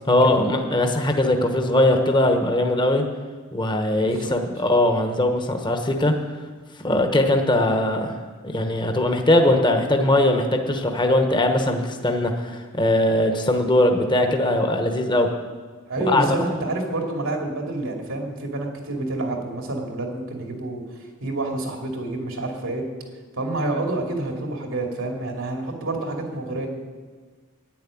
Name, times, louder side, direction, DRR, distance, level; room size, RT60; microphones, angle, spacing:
voice 1, 0.1-3.0 3.5-6.1 6.8-15.3 16.1-16.3, left 1 dB, 20° left, 4 dB, 1.1 m, -20 dB
voice 2, 4.0-4.4 15.9-22.8 23.4-26.7, right 2 dB, 85° right, 1 dB, 2.7 m, -28 dB
10.5 x 10.5 x 8.6 m, 1.5 s
head